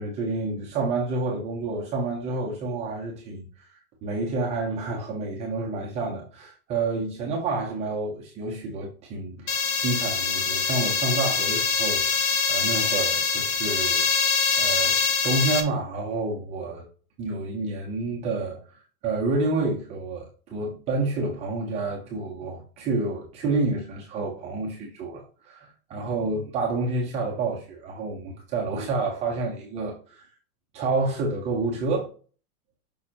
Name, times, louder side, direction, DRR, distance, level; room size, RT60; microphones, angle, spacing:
voice 1, 0.0-14.1 14.6-16.8 17.2-30.3 30.7-32.1, right 3 dB, 15° right, 0.6 m, -29 dB
sound 1, 9.5-15.6, left 5 dB, 50° left, 1.5 m, -24 dB
6.6 x 5.3 x 2.9 m
supercardioid pair, 170°, 46 cm